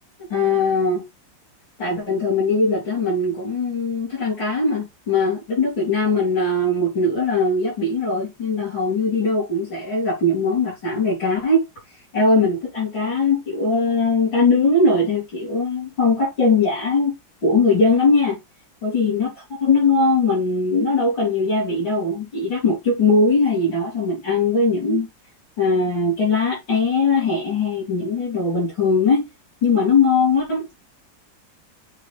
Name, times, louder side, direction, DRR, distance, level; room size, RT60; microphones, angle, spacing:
voice 1, 0.2-1.0 1.8-11.6 12.1-17.1 17.4-18.4 18.8-25.1 25.6-29.2 29.6-30.7, left 3 dB, 90° left, 4.9 m, -20 dB
8.0 x 4.0 x 3.5 m
omnidirectional pair, 2.0 m